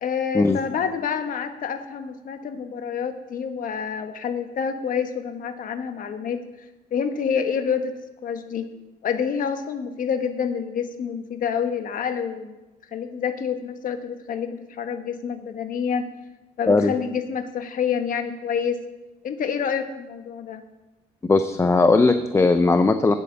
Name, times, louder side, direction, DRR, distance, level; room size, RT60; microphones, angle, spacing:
voice 1, 0.0-6.4 6.9-7.9 8.2-8.7 9.0-12.6 12.9-16.1 16.6-18.8 19.2-20.6, left 7 dB, 55° left, 8 dB, 1.3 m, -27 dB
voice 2, 21.2-23.1, left 3 dB, 15° left, 9 dB, 0.5 m, -18 dB
9.4 x 8.5 x 6.6 m, 1.1 s
cardioid pair, 110°, 17 cm